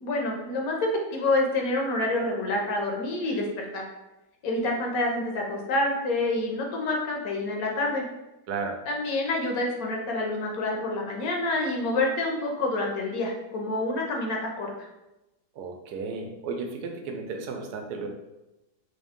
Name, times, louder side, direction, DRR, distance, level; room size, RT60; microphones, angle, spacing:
voice 1, 0.0-3.8 4.4-8.1 8.9-14.7, left 2 dB, 70° left, 1 dB, 1.1 m, -27 dB
voice 2, 8.5-8.8 15.6-18.1, right 4 dB, 80° right, 3 dB, 1.1 m, -34 dB
3.5 x 2.6 x 3.5 m, 0.98 s
omnidirectional pair, 1.7 m